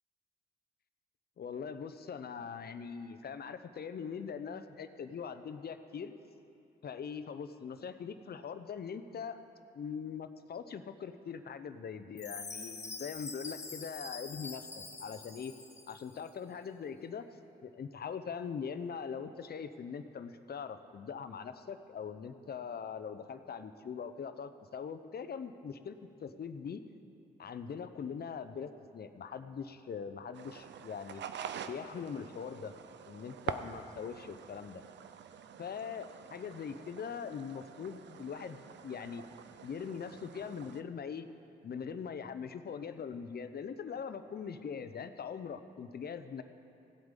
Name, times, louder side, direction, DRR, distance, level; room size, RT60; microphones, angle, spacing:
voice 1, 1.4-6.1 6.8-9.4 9.7-14.7 15.0-15.5 15.9-17.3 17.6-26.8 27.4-31.2 31.7-32.7 33.1-34.8 35.6-39.2 39.6-41.3 41.6-46.4, left 6 dB, 55° left, 11 dB, 0.8 m, -42 dB
Chime, 12.2-16.2, left 4 dB, 35° left, 1.5 m, -45 dB
sound 1, 30.3-40.8, right 8 dB, 70° right, 0.6 m, -46 dB
16.5 x 8.0 x 5.3 m, 2.6 s
supercardioid pair, 45°, 19 cm